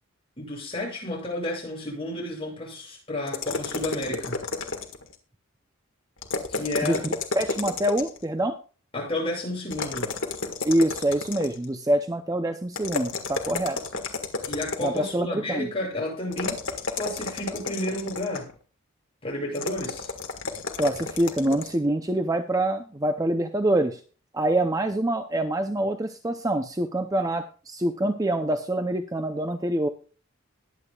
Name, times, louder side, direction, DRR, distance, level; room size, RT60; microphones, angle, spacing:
voice 1, 0.4-4.5 6.5-7.1 8.9-10.2 14.5-16.6 16.9-18.5 19.2-20.1, left 1 dB, 25° left, -2 dB, 7.4 m, -31 dB
sound 1, 3.3-5.2 6.2-8.2 9.7-11.7 12.7-15.1 16.3-18.5 19.5-21.8, left 3 dB, 60° left, 1.8 m, -31 dB
voice 2, 6.8-8.6 10.6-13.8 14.8-15.7 20.8-24.0 24.3-29.9, right 1 dB, 15° right, 7 dB, 0.6 m, -25 dB
21.0 x 8.5 x 2.4 m, 0.37 s
head